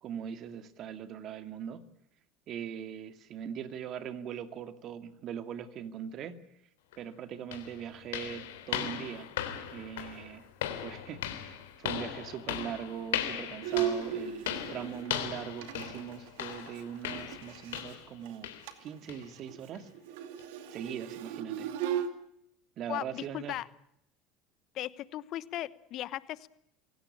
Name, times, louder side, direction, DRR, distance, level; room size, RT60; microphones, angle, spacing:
voice 1, 0.0-1.8 2.5-6.4 7.0-9.3 9.7-10.5 10.8-18.5 18.8-19.9 20.7-21.7 22.8-23.6, right 8 dB, 50° right, 10 dB, 2.2 m, -41 dB
sound 1, 6.9-7.0 7.5-18.1 18.4-18.7 19.1-19.3 19.7-19.8 20.4-20.5, left 10 dB, 80° left, 3.4 m, -38 dB
Bowed string instrument, 13.6-17.9 18.2-18.4 18.6-18.9 19.2-22.1, right 9 dB, 70° right, 2.4 m, -36 dB
voice 2, 22.9-23.7 24.7-26.5, left 14 dB, 55° left, 18 dB, 1.1 m, -37 dB
26.0 x 17.5 x 8.6 m, 0.76 s
hypercardioid pair, 75°, 0 cm